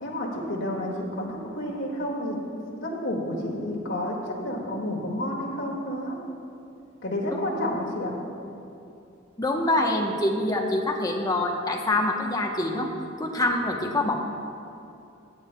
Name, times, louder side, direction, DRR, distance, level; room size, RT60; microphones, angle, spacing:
voice 1, 0.0-2.4 2.8-6.2 7.0-8.1, left 1 dB, 70° left, -2 dB, 1.9 m, -30 dB
voice 2, 9.4-12.9 13.2-14.2, left 1 dB, 20° left, 1 dB, 0.9 m, -25 dB
23.5 x 8.3 x 2.2 m, 2.7 s
head